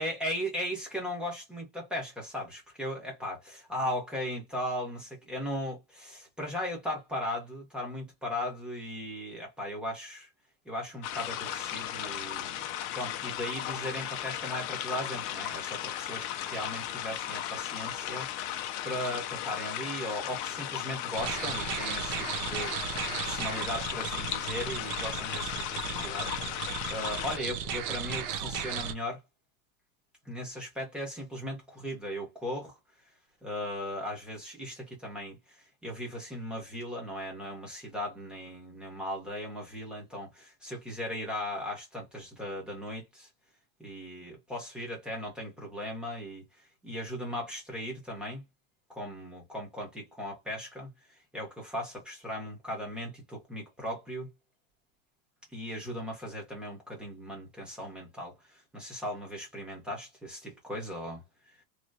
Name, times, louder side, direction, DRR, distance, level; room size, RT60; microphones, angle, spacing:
voice 1, 0.0-10.3 10.6-12.5 12.9-23.0 23.2-29.2 30.2-32.8 33.4-43.3 43.8-48.5 48.9-50.9 51.3-54.3 55.5-61.2 61.5-61.6, left 1 dB, ahead, 1.1 m, -37 dB
sound 1, 11.0-27.4, left 12 dB, 40° left, 0.5 m, -36 dB
sound 2, 21.1-28.9, right 7 dB, 40° right, 0.5 m, -35 dB
3.1 x 2.9 x 2.6 m
cardioid pair, 170°, 49 cm